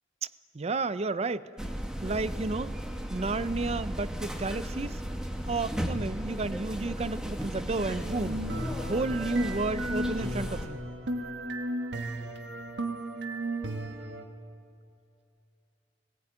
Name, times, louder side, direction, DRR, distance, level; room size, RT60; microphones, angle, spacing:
voice 1, 0.5-1.5 2.0-2.8 3.1-5.0 5.5-8.4 8.9-10.8, right 3 dB, 35° right, 15 dB, 0.5 m, -32 dB
sound 1, 1.6-10.7, equal, 5° right, 1.4 m, -35 dB
sound 2, 7.8-14.2, right 1 dB, 85° right, 1.6 m, -35 dB
19.0 x 18.0 x 8.9 m, 2.6 s
head